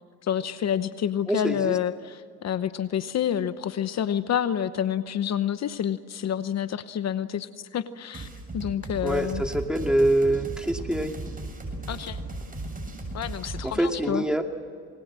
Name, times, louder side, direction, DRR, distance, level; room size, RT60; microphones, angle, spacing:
voice 1, 0.2-8.3 8.5-9.4 11.9-12.2 13.1-14.2, left 9 dB, 60° left, 12 dB, 1.0 m, -28 dB
voice 2, 1.3-1.8 9.0-11.1 13.6-14.4, right 1 dB, 5° right, 4 dB, 2.5 m, -25 dB
sound 1, 8.1-13.7, right 2 dB, 30° right, 7.2 m, -36 dB
28.5 x 20.5 x 7.5 m, 2.2 s
cardioid pair, 90°, 30 cm